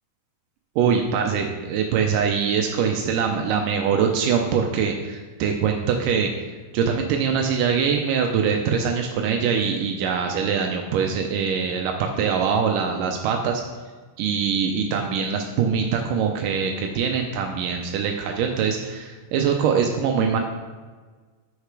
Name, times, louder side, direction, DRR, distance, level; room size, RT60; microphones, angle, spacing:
voice 1, 0.8-6.3 6.7-13.6 14.2-20.4, right 6 dB, 90° right, 3 dB, 1.9 m, -23 dB
9.1 x 6.6 x 4.7 m, 1.4 s
omnidirectional pair, 4.5 m